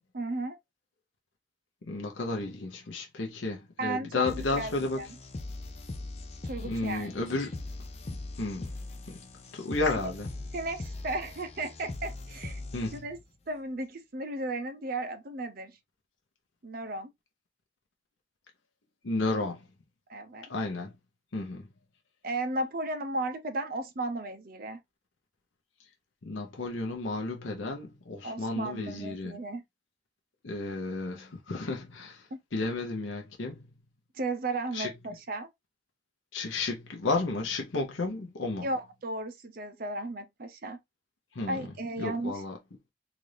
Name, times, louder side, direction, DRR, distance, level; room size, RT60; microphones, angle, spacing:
voice 1, 0.1-0.6 3.8-5.2 6.4-7.1 10.0-10.1 10.5-12.6 12.9-13.2 13.5-15.8 16.6-17.1 20.1-20.5 22.2-24.8 28.2-29.6 32.3-32.4 34.1-35.5 38.6-40.8 41.5-42.4, right 2 dB, 45° right, 0.6 m, -35 dB
voice 2, 1.9-5.0 6.6-7.6 8.1-8.7 9.1-9.2 9.5-10.3 12.7-13.0 19.0-19.6 20.5-20.9 21.3-21.6 26.3-29.4 30.4-33.6 34.7-34.9 36.3-38.7 41.3-41.7 42.0-42.6, left 3 dB, 75° left, 0.8 m, -32 dB
sound 1, 4.2-13.2, left 2 dB, 30° left, 0.5 m, -41 dB
3.9 x 2.6 x 3.2 m
head